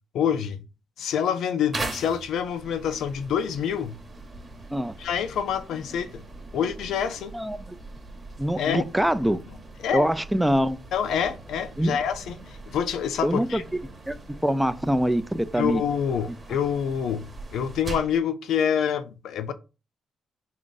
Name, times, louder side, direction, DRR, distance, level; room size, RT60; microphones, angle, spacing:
voice 1, 0.1-0.6 1.0-4.0 5.0-6.3 6.5-7.3 8.6-8.8 9.8-10.1 10.9-13.6 15.5-19.5, left 8 dB, 75° left, 0.4 m, -27 dB
sound 1, 1.7-18.2, right 2 dB, 35° right, 0.9 m, -41 dB
voice 2, 7.3-7.8 8.4-9.4 9.9-10.8 11.8-12.0 13.2-13.6 14.1-14.2 14.4-15.8, equal, 5° right, 0.3 m, -24 dB
3.6 x 2.5 x 3.8 m
cardioid pair, 90°, 0 cm